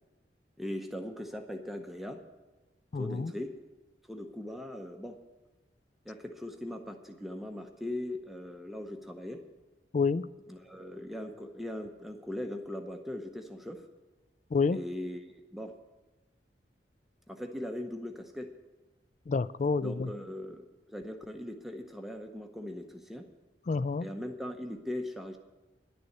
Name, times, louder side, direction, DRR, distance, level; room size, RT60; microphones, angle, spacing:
voice 1, 0.6-2.2 2.9-3.6 4.0-5.2 6.0-9.4 10.5-13.9 14.7-15.8 17.3-18.5 19.8-23.3 24.0-25.4, left 1 dB, ahead, 4 dB, 0.7 m, -40 dB
voice 2, 2.9-3.3 9.9-10.3 14.5-14.8 19.3-20.1 23.7-24.1, left 4 dB, 45° left, 17 dB, 0.3 m, -28 dB
11.0 x 6.9 x 9.4 m, 1.1 s
head